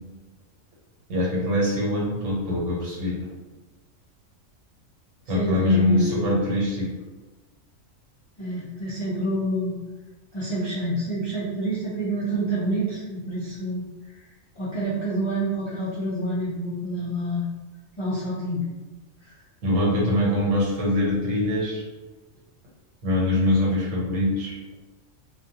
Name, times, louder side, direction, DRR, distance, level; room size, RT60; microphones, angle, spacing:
voice 1, 1.1-3.2 5.3-6.9 19.6-21.8 23.0-24.6, left 1 dB, 75° right, -4 dB, 1.2 m, -23 dB
voice 2, 5.3-6.3 8.4-9.8 10.3-13.8 14.6-17.4 18.0-18.6, right 1 dB, 55° left, -9 dB, 0.3 m, -28 dB
2.3 x 2.3 x 2.7 m, 1.2 s
omnidirectional pair, 1.4 m